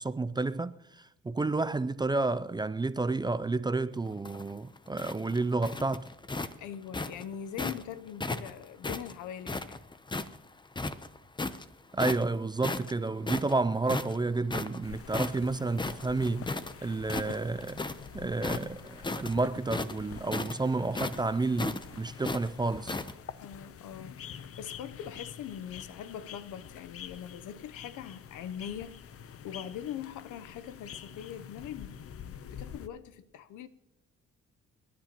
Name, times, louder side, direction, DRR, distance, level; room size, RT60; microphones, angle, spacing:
voice 1, 0.0-6.1 11.9-16.5 16.8-17.8 18.1-23.0, right 3 dB, 15° right, 0.4 m, -30 dB
sound 1, 4.1-7.8 8.2-10.4 10.7-11.6 12.0-12.3 12.6-16.7 17.0-18.1 18.4-23.1, left 3 dB, 15° left, 0.7 m, -35 dB
voice 2, 6.5-9.8 23.4-29.0 29.4-33.7, left 9 dB, 80° left, 0.8 m, -42 dB
sound 2, 14.8-32.9, left 8 dB, 50° left, 0.7 m, -47 dB
28.0 x 10.5 x 2.9 m
cardioid pair, 90°, 30 cm